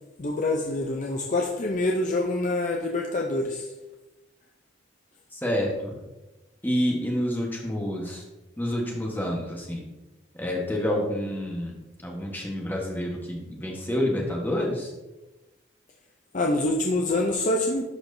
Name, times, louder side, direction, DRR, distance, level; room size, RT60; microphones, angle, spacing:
voice 1, 0.2-3.6 16.3-17.8, left 2 dB, 40° left, 1 dB, 0.6 m, -26 dB
voice 2, 5.3-6.0 6.6-8.2 8.6-9.8 10.3-14.9, equal, 10° left, -1 dB, 1.2 m, -28 dB
12.0 x 4.5 x 2.7 m, 1.0 s
head